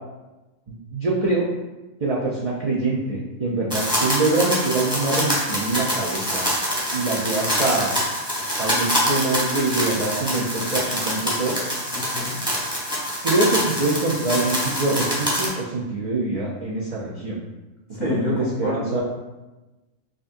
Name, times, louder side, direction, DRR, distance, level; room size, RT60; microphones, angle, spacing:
voice 1, 0.7-1.4 2.0-6.5 6.9-7.9 8.6-11.6 13.2-17.4 18.0-19.0, right 2 dB, 65° right, -6 dB, 0.3 m, -24 dB
sound 1, 3.7-15.5, equal, 5° right, 0.8 m, -25 dB
voice 2, 11.9-12.4 17.9-19.0, left 2 dB, 45° left, -4 dB, 0.7 m, -28 dB
4.9 x 2.6 x 2.5 m, 1.1 s
omnidirectional pair, 1.4 m